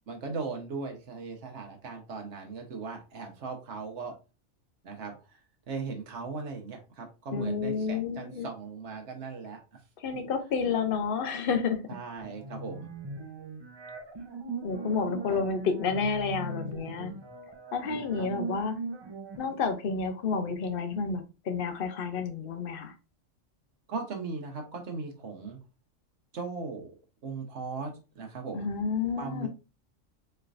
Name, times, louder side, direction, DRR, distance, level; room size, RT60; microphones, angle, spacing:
voice 1, 0.1-4.1 4.8-5.1 5.7-9.8 11.9-12.9 15.3-15.5 16.5-17.3 18.2-18.3 23.9-25.6 26.3-26.9 27.2-28.7 29.2-29.5, right 4 dB, 65° right, 1.3 m, -38 dB
voice 2, 7.3-8.5 10.0-11.8 14.6-17.1 17.7-18.7 19.4-22.9 28.5-29.5, left 5 dB, 55° left, 0.8 m, -30 dB
sound 1, 12.2-19.4, right 3 dB, 35° right, 0.4 m, -40 dB
4.5 x 3.2 x 2.5 m
omnidirectional pair, 1.3 m